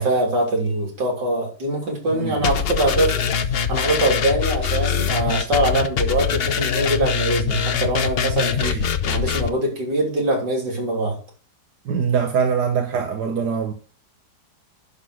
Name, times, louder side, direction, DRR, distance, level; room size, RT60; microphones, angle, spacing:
voice 1, 0.0-3.2 3.7-11.2, right 1 dB, 90° right, 3.9 m, -23 dB
sound 1, 2.4-9.5, left 7 dB, 55° left, 0.7 m, -23 dB
voice 2, 8.4-8.8 11.9-13.7, right 6 dB, 70° right, 1.6 m, -23 dB
11.0 x 4.0 x 6.2 m
omnidirectional pair, 1.8 m